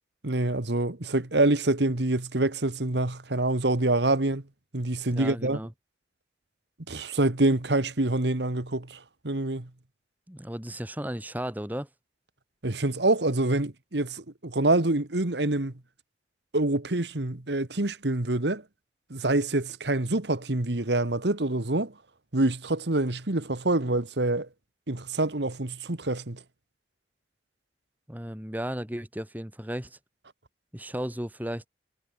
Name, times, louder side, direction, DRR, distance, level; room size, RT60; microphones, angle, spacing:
voice 1, 0.2-4.4 4.7-5.6 6.9-9.0 9.2-9.7 12.6-15.7 16.5-18.6 19.1-21.9 22.3-24.5 24.9-26.4, right 2 dB, 75° right, 1.7 m, -26 dB
voice 2, 5.1-5.7 10.3-11.9 28.1-30.0 30.7-31.7, equal, 10° right, 2.5 m, -34 dB
head